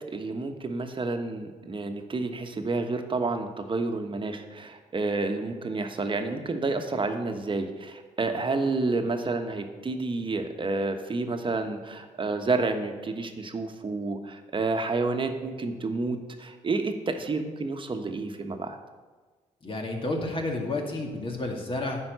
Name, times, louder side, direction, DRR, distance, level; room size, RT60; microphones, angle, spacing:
voice 1, 0.1-18.8, right 3 dB, 35° right, 6 dB, 1.2 m, -30 dB
voice 2, 19.6-22.0, left 2 dB, 40° left, 1 dB, 2.1 m, -30 dB
9.7 x 5.3 x 6.7 m, 1.3 s
supercardioid pair, 60°, 14 cm